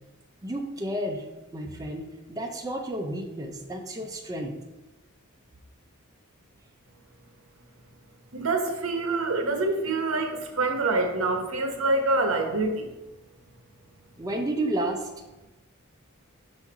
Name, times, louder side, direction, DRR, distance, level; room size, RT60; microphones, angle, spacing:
voice 1, 0.4-1.2 1.5-4.6 14.2-15.1, right 1 dB, 15° right, 2 dB, 0.5 m, -31 dB
voice 2, 8.3-12.9, right 2 dB, 70° right, 5 dB, 1.1 m, -26 dB
5.8 x 4.1 x 5.9 m, 1.0 s
head